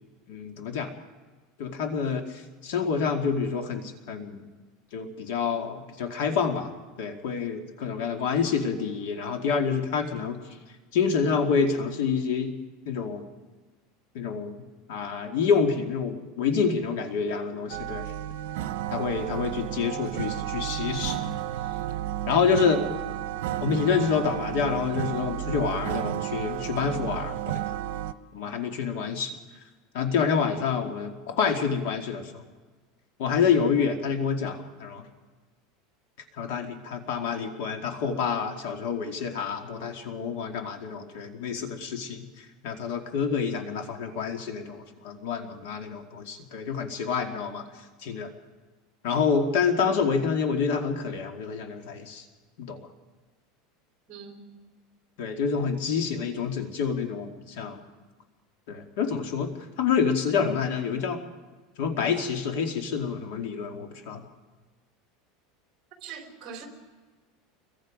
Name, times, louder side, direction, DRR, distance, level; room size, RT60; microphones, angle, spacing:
voice 1, 0.3-0.9 1.6-2.3 2.6-4.5 4.9-6.7 7.0-10.4 10.9-12.5 12.9-13.2 14.1-14.5 14.9-18.1 18.9-21.2 22.3-22.8 23.6-27.8 28.3-29.4 29.9-32.4 33.2-35.0 36.4-42.2 42.6-47.6 48.0-48.3 49.0-52.2 52.6-52.8 55.2-57.8 58.7-59.5 59.8-61.2 61.8-64.2, left 6 dB, 65° left, 4 dB, 2.3 m, -27 dB
sound 1, 17.7-28.1, right 12 dB, 80° right, 0.9 m, -32 dB
voice 2, 54.1-54.6 66.0-66.7, right 6 dB, 30° right, 3 dB, 4.1 m, -42 dB
29.0 x 22.5 x 5.2 m, 1.4 s
supercardioid pair, 175°, 0 cm